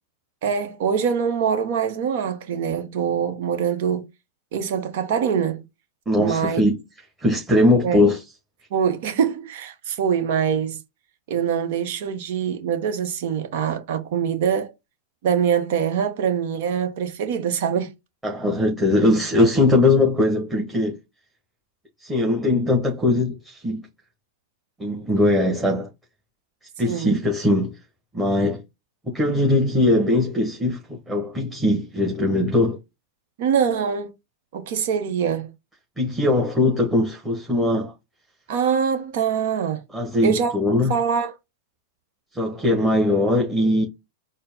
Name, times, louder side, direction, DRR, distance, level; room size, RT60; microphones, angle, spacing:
voice 1, 0.4-4.0 4.5-5.6 6.2-6.6 7.8-8.0 8.7-10.8 11.3-14.7 15.2-17.9 26.8-27.1 33.4-34.1 34.5-35.5 38.5-39.8 40.2-40.5 40.9-41.3, right 7 dB, 60° right, 0.9 m, -24 dB
voice 2, 6.1-6.8 7.2-8.2 18.2-21.0 22.0-23.8 24.8-25.9 26.8-27.8 28.1-28.6 29.0-32.8 36.0-37.9 39.9-40.9 42.3-43.8, left 2 dB, 10° right, 1.4 m, -20 dB
4.4 x 2.1 x 3.6 m
hypercardioid pair, 100°, 0 cm